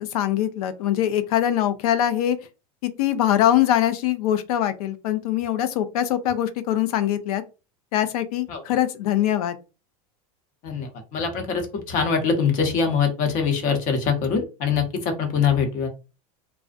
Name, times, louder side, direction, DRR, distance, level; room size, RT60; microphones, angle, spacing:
voice 1, 0.0-2.4 2.8-7.4 7.9-9.6, left 11 dB, 75° left, 0.5 m, -23 dB
voice 2, 10.6-15.9, left 6 dB, 45° left, 0.8 m, -23 dB
2.4 x 2.0 x 2.5 m
supercardioid pair, 125°, 19 cm